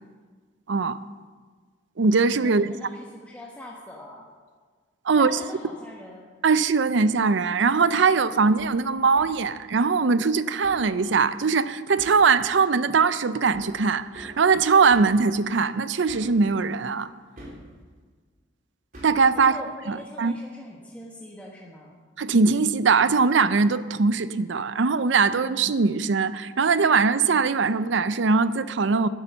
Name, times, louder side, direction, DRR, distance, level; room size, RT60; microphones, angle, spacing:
voice 1, 0.7-1.0 2.0-2.7 5.1-5.4 6.4-17.1 19.0-19.5 19.9-20.3 22.2-29.1, right 4 dB, 65° right, 0.5 m, -21 dB
voice 2, 2.4-4.2 5.1-6.3 19.3-21.9, left 1 dB, 10° left, 1.3 m, -42 dB
Hammer, 8.6-8.8 9.2-9.4 10.6-10.9 12.0-12.3 13.5-13.8 14.1-14.4 14.9-15.2 16.1-16.4 17.4-17.7 18.9-19.3, right 1 dB, 45° right, 3.5 m, -43 dB
11.5 x 10.5 x 6.9 m
head